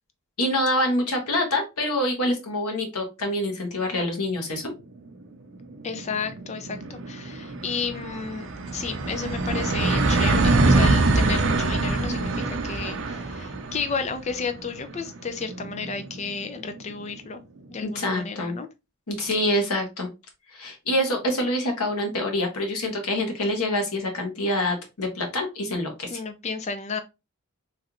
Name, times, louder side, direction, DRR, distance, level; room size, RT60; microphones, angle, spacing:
voice 1, 0.4-4.7 17.8-18.6 19.1-20.1 20.5-26.2, left 1 dB, 90° left, 1.1 m, -26 dB
sound 1, 4.8-4.9 5.2-5.3 5.6-17.0, right 2 dB, 55° right, 0.5 m, -25 dB
voice 2, 5.8-17.4 17.7-18.7 26.1-27.0, left 5 dB, 30° left, 0.4 m, -32 dB
3.2 x 2.5 x 2.8 m
head